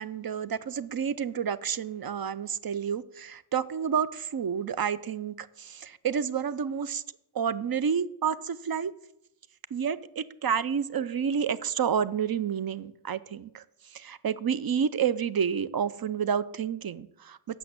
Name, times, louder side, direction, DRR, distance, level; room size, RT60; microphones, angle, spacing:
voice 1, 0.0-7.0 7.4-8.9 9.7-13.6 14.0-17.4, right 7 dB, 45° right, 16 dB, 0.5 m, -29 dB
8.0 x 6.2 x 7.7 m, 0.78 s
wide cardioid pair, 90°, 49 cm